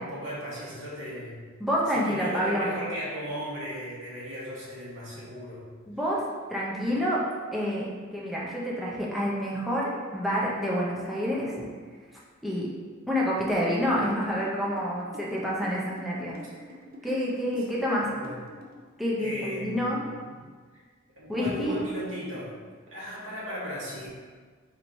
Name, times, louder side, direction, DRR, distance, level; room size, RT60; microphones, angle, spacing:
voice 1, 0.0-1.4 1.9-5.6 16.4-16.5 17.0-17.1 18.0-18.4 19.2-20.4 20.7-20.8 21.2-24.1, equal, 75° right, -7 dB, 1.3 m, -37 dB
voice 2, 1.6-2.7 5.9-7.2 7.5-11.6 12.4-12.7 13.1-16.4 17.0-18.1 19.0-20.0 21.3-21.8, equal, ahead, -6 dB, 0.5 m, -28 dB
sound 1, 13.6-18.9, equal, 50° right, 0.5 m, -46 dB
4.3 x 3.0 x 2.6 m, 1.5 s
head